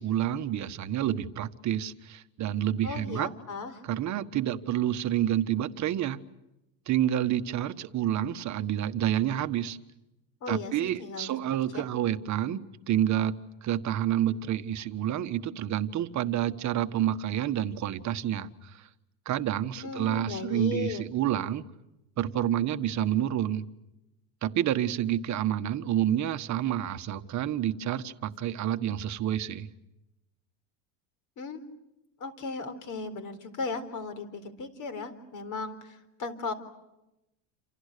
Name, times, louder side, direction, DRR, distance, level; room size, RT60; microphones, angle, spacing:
voice 1, 0.0-3.3 3.8-6.2 6.9-9.8 10.5-18.9 19.2-21.6 22.2-23.7 24.4-29.7, right 11 dB, 40° right, 10 dB, 1.5 m, -29 dB
voice 2, 2.8-3.7 10.4-11.4 11.7-11.8 19.8-21.0 31.4-31.6 32.2-35.8 36.2-36.5, left 4 dB, 40° left, 10 dB, 4.1 m, -36 dB
28.5 x 28.5 x 6.8 m, 0.91 s
cardioid pair, 140°, 45 cm